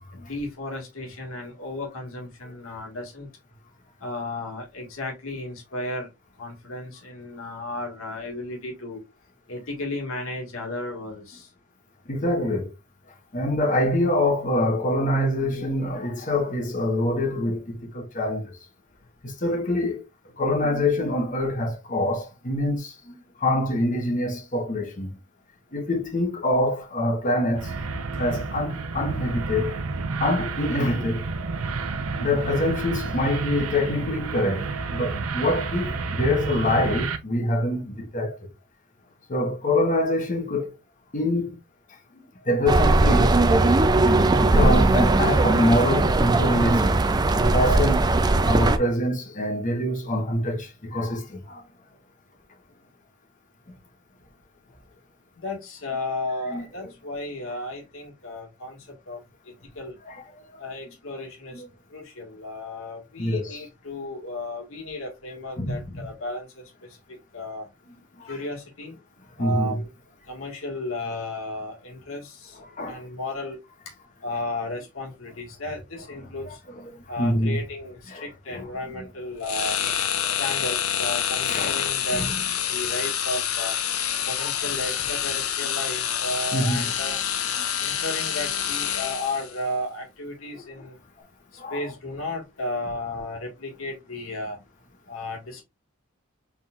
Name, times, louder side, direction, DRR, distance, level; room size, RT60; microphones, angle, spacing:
voice 1, 0.1-3.3 4.0-6.1 6.4-9.0 9.5-11.5 55.4-58.8 59.1-59.2 59.7-60.0 60.6-61.6 61.9-66.6 67.1-67.7 68.2-69.0 69.4-69.9 70.3-72.6 72.8-73.6 74.2-76.6 77.1-79.8 80.3-82.3 82.7-83.8 84.2-87.2 87.8-91.0 91.5-94.6 95.1-95.6, left 2 dB, 75° left, 1.6 m, -34 dB
voice 2, 12.1-12.7 13.3-18.6 19.2-20.0 20.4-25.2 25.7-27.7 28.2-29.8 30.2-31.2 32.2-38.4 39.3-40.7 41.1-41.6 42.5-43.4 44.0-47.0 47.3-51.6 56.5-56.6 60.1-60.2 60.5-60.6 61.5-61.7 63.2-63.6 65.6-65.8 68.2-68.3 69.4-69.8 72.6-73.0 76.2-76.9 77.2-77.6 78.1-78.7 79.8-80.5 81.5-81.8 82.1-82.3 84.4-84.5 86.5-86.9 90.5-90.8 91.6-91.9, left 1 dB, 40° left, 1.0 m, -25 dB
sound 1, 27.6-37.2, right 3 dB, 85° right, 0.7 m, -30 dB
sound 2, 42.7-48.8, right 2 dB, 20° right, 0.3 m, -19 dB
sound 3, 79.4-89.5, left 9 dB, 90° left, 0.7 m, -27 dB
4.3 x 3.6 x 2.4 m
head